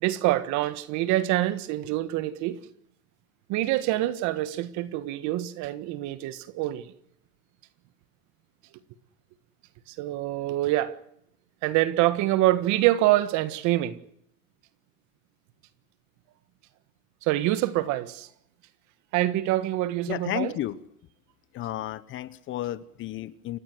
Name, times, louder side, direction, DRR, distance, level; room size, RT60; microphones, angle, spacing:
voice 1, 0.0-2.6 3.5-6.9 9.9-11.0 11.6-14.0 17.2-18.3 19.1-20.5, right 15 dB, 40° right, 1.6 m, -25 dB
voice 2, 20.1-20.8 21.5-23.6, left 14 dB, 25° left, 1.0 m, -32 dB
29.5 x 16.5 x 8.0 m
supercardioid pair, 145°, 44 cm